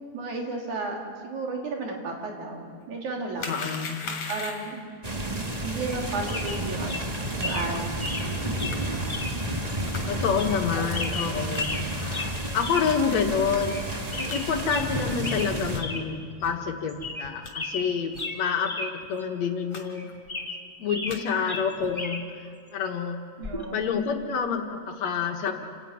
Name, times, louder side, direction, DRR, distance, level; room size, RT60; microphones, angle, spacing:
voice 1, 0.1-1.0 1.2-3.5 4.0-4.8 5.6-8.1 8.5-8.6 10.7-10.8 23.4-23.8, right 3 dB, 80° right, 0 dB, 4.3 m, -33 dB
sound 1, 3.4-4.8 8.0-8.1 8.7-8.8 9.8-10.1 10.6-10.8 11.5-11.6 12.1-12.3 12.9-13.0 13.5-13.6 13.9-14.0 14.3-14.4 14.9-15.1 15.7-15.9 16.4-16.5 17.0-17.5 18.1-18.3 18.6-18.7 19.0-19.2 19.7-19.8 20.1-20.5 20.9-21.2 21.8-22.0, left 4 dB, 55° left, 3.6 m, -38 dB
voice 2, 3.5-4.1 10.1-13.8 14.1-20.1 20.8-23.2 23.7-25.5, left 6 dB, 70° left, 4 dB, 2.6 m, -28 dB
sound 2, 5.0-15.8, right 1 dB, 25° right, 0.8 m, -31 dB
sound 3, 5.8-6.0 6.3-6.6 6.9-7.0 7.4-7.7 8.0-8.3 8.6-8.8 9.1-9.3 9.7-9.8 10.4-10.6 10.9-11.9 12.1-12.3 12.6-12.9 13.2-13.3 13.6-13.8 14.1-14.9 15.2-15.5 15.8-16.0 16.4-16.5 16.9-17.3 17.5-18.9 19.2-19.3 19.9-21.2 21.5-22.2 23.4-23.6, left 2 dB, 15° left, 0.9 m, -34 dB
28.5 x 12.0 x 9.1 m, 2.3 s
omnidirectional pair, 3.4 m